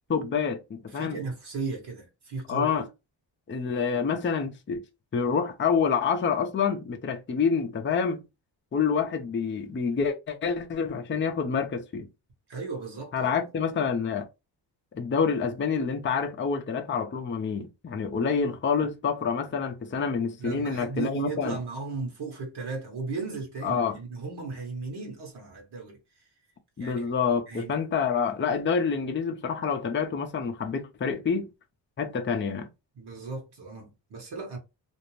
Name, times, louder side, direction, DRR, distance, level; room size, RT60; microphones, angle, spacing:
voice 1, 0.1-1.2 2.5-2.9 3.5-4.8 5.1-8.2 8.7-12.1 13.1-14.2 14.9-21.6 23.6-24.0 26.8-31.5 32.0-32.7, left 6 dB, 25° left, 0.5 m, -27 dB
voice 2, 0.9-2.8 12.5-13.3 20.4-26.0 26.8-27.1 27.5-27.7 32.9-34.6, right 4 dB, 60° right, 1.2 m, -36 dB
2.5 x 2.0 x 3.1 m
cardioid pair, 75°, 45 cm